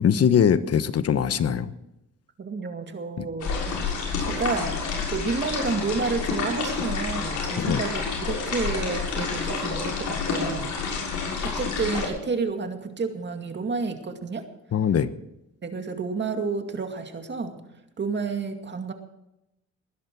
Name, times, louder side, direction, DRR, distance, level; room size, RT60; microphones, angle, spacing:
voice 1, 0.0-1.7 3.2-3.3 7.6-7.8 14.7-15.1, left 8 dB, 55° left, 13 dB, 1.2 m, -22 dB
voice 2, 2.4-3.5 4.2-4.7 5.1-10.7 11.4-14.4 15.6-17.6 18.0-18.9, right 4 dB, 35° right, 6 dB, 2.3 m, -30 dB
sound 1, 3.4-12.1, left 5 dB, 75° left, 6.6 m, -29 dB
20.0 x 11.0 x 4.7 m, 0.88 s
cardioid pair, 90°, 30 cm